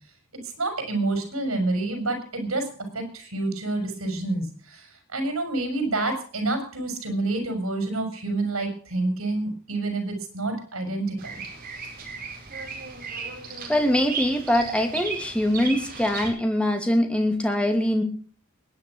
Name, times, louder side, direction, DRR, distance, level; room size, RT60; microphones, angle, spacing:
voice 1, 0.6-11.4, right 2 dB, 80° right, 6 dB, 5.9 m, -28 dB
Bird vocalization bird call bird song, 11.2-16.3, right 4 dB, 45° right, 4.7 m, -35 dB
voice 2, 13.7-18.0, left 1 dB, 5° left, 4 dB, 2.5 m, -23 dB
21.0 x 9.6 x 6.1 m, 0.43 s
head